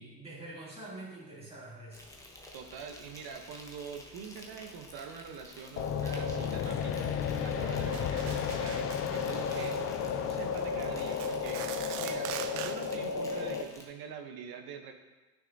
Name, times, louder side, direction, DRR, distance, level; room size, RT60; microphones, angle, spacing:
voice 1, 0.0-2.2, right 2 dB, 10° right, -6 dB, 2.6 m, -46 dB
Insect, 1.9-13.9, left 1 dB, 5° left, 0.9 m, -51 dB
voice 2, 2.5-9.8 10.2-11.6 12.0-14.9, right 6 dB, 45° right, 6 dB, 0.9 m, -44 dB
sound 1, 5.8-13.6, left 6 dB, 30° left, 0.3 m, -33 dB
sound 2, 7.9-9.0 9.3-9.8 10.4-10.6 11.0-13.0, right 11 dB, 85° right, 0.6 m, -42 dB
9.8 x 6.4 x 2.7 m, 1.2 s
supercardioid pair, 120°, 49 cm